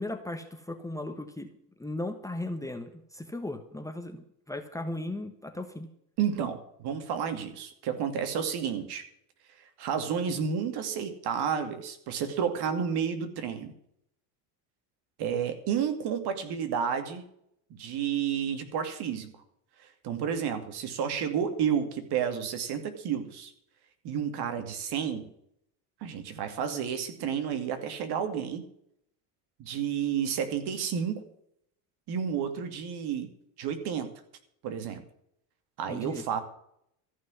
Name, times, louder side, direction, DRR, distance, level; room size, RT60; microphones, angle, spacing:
voice 1, 0.0-1.5 1.8-5.9 35.9-36.2, left 1 dB, 5° left, 6 dB, 1.2 m, -37 dB
voice 2, 6.2-9.0 9.6-13.7 15.2-17.3 17.7-19.3 20.0-23.5 24.0-25.3 26.0-28.7 29.6-31.2 32.1-33.3 33.6-34.1 34.6-35.0 35.8-36.4, right 7 dB, 55° right, 8 dB, 2.5 m, -31 dB
14.0 x 6.2 x 9.7 m, 0.72 s
supercardioid pair, 115°, 47 cm